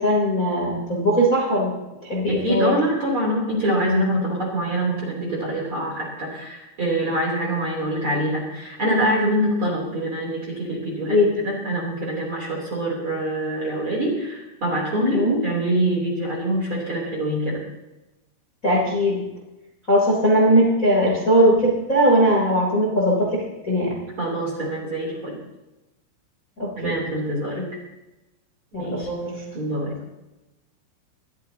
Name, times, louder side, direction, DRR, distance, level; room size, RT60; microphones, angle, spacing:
voice 1, 0.0-1.8 2.0-2.7 11.1-11.3 15.1-15.4 18.6-19.2 19.9-23.9 26.6-27.0 28.7-29.4, equal, 20° left, -4 dB, 2.8 m, -19 dB
voice 2, 2.3-17.6 24.2-25.4 26.7-27.6 28.8-29.1 29.5-30.0, right 1 dB, 30° right, -4 dB, 3.4 m, -25 dB
23.5 x 14.0 x 2.9 m, 0.98 s
omnidirectional pair, 6.0 m